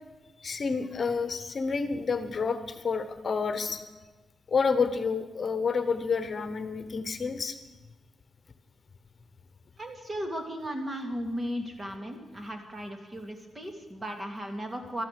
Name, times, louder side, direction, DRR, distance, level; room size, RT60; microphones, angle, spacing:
voice 1, 0.4-3.8 4.5-7.6, left 5 dB, 45° left, 10 dB, 1.1 m, -29 dB
voice 2, 9.8-15.0, equal, 25° right, 4 dB, 2.7 m, -36 dB
13.0 x 12.5 x 7.8 m, 1.2 s
cardioid pair, 85°, 0 cm